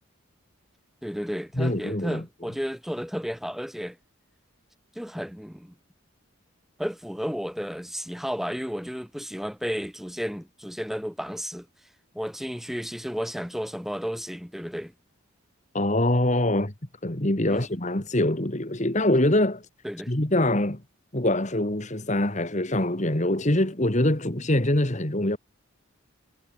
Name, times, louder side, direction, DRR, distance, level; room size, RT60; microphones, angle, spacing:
voice 1, 1.0-4.0 4.9-5.7 6.8-11.7 12.1-14.9 17.5-17.7 19.8-20.1, equal, ahead, 7.5 m, -33 dB
voice 2, 1.6-2.2 15.7-16.7 17.0-19.6 20.1-20.8 21.1-25.4, left 1 dB, 35° left, 2.0 m, -24 dB
head